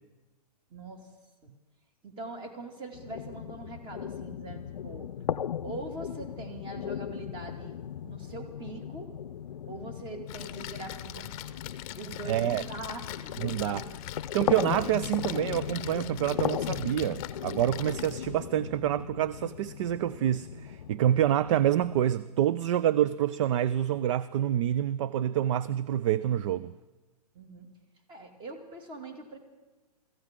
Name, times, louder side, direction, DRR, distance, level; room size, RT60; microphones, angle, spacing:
voice 1, 0.7-1.1 1.4-1.5 2.0-5.1 5.6-9.1 9.7-11.7 11.9-13.9 27.3-27.7 28.1-29.4, right 2 dB, 25° right, 2.5 m, -42 dB
sound 1, 2.9-22.1, left 9 dB, 85° left, 0.6 m, -37 dB
Splash splatter, 10.3-18.4, left 14 dB, 30° left, 0.8 m, -43 dB
voice 2, 12.3-12.6 13.4-13.8 14.3-26.7, right 11 dB, 50° right, 0.4 m, -27 dB
24.0 x 15.0 x 3.7 m
hypercardioid pair, 130°, 21 cm